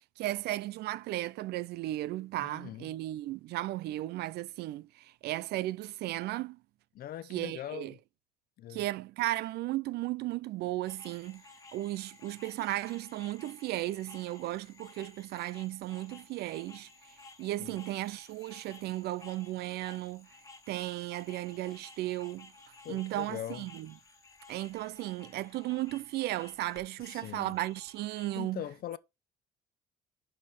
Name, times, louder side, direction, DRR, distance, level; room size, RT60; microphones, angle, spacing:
voice 1, 0.2-6.6 7.3-7.9 8.7-11.4 11.7-16.9 17.4-20.3 20.7-22.5 22.9-23.9 24.5-28.6, right 16 dB, 75° right, 0.5 m, -35 dB
voice 2, 2.4-2.9 6.9-8.0 8.6-8.8 17.6-17.8 22.8-23.7 27.0-27.6 28.4-29.0, left 12 dB, 60° left, 0.8 m, -41 dB
sound 1, 10.9-28.4, left 3 dB, 20° left, 1.5 m, -55 dB
11.0 x 4.4 x 4.9 m
cardioid pair, 110°, 17 cm